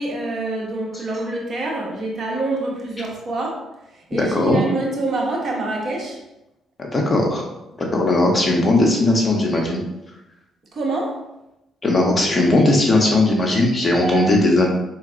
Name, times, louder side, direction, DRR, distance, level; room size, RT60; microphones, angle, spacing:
voice 1, 0.0-6.2 10.7-11.3 13.5-13.6 14.0-14.3, right 2 dB, 45° right, -1 dB, 1.0 m, -26 dB
voice 2, 4.2-4.6 6.8-7.4 7.8-9.8 11.8-14.7, left 2 dB, 30° left, 0 dB, 0.9 m, -18 dB
4.4 x 3.7 x 2.5 m, 0.92 s
cardioid pair, 105°, 0 cm